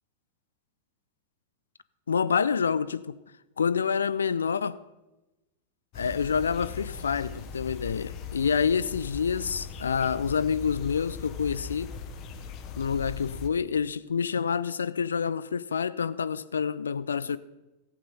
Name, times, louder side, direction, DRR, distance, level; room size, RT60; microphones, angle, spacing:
voice 1, 2.1-3.2 3.6-4.8 5.9-11.9 12.8-17.4, left 6 dB, 70° left, 0.4 m, -27 dB
sound 1, 5.9-13.5, left 6 dB, 40° left, 1.1 m, -40 dB
15.0 x 8.5 x 5.6 m
figure-of-eight pair, 90°, 0 cm